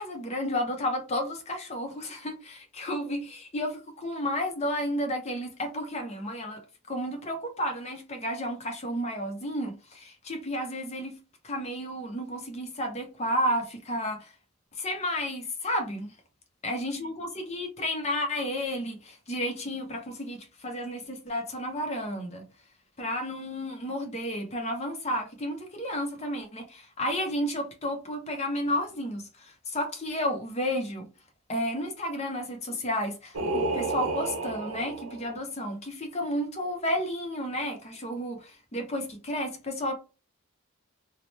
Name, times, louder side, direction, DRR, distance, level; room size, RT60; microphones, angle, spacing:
voice 1, 0.0-6.6 6.9-11.2 11.4-14.3 14.8-16.2 16.6-22.5 23.0-31.1 31.5-39.9, equal, 30° left, 0.6 m, -32 dB
Singing, 33.3-35.4, right 2 dB, 60° right, 0.5 m, -31 dB
2.9 x 2.0 x 3.1 m
head